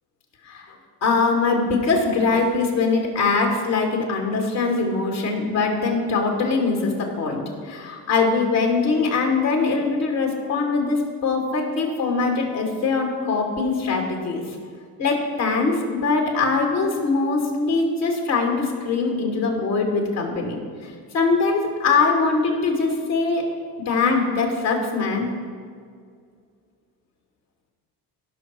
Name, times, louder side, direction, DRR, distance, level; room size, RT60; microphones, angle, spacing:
voice 1, 1.0-14.5 15.0-23.4 23.9-25.3, left 4 dB, 85° left, 1 dB, 2.7 m, -22 dB
17.0 x 6.2 x 4.5 m, 2.1 s
hypercardioid pair, 65°, 49 cm